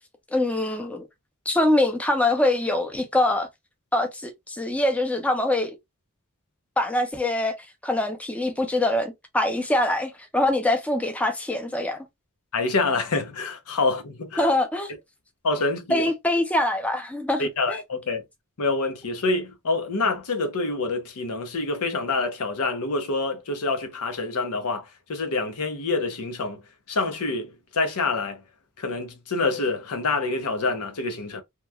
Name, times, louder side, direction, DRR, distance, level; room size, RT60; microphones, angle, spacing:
voice 1, 0.3-1.1 1.5-3.5 3.9-5.8 6.8-7.6 7.8-12.1 14.4-14.9 15.9-17.8, left 1 dB, 5° left, 0.4 m, -24 dB
voice 2, 12.5-14.5 15.4-16.1 17.4-18.2 18.6-26.6 26.9-28.4 28.8-31.4, left 3 dB, 85° left, 0.7 m, -26 dB
2.9 x 2.3 x 2.2 m
head